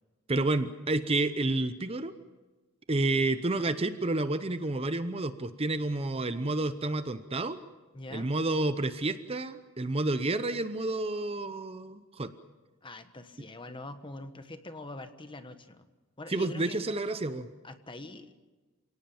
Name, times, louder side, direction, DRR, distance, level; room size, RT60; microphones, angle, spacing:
voice 1, 0.3-2.1 2.9-7.6 8.1-12.3 16.3-17.5, right 2 dB, 25° right, 11 dB, 0.8 m, -30 dB
voice 2, 7.9-8.3 12.8-15.9 16.2-16.8 17.6-18.4, left 2 dB, 25° left, 9 dB, 1.3 m, -43 dB
28.5 x 18.0 x 7.1 m, 1.2 s
head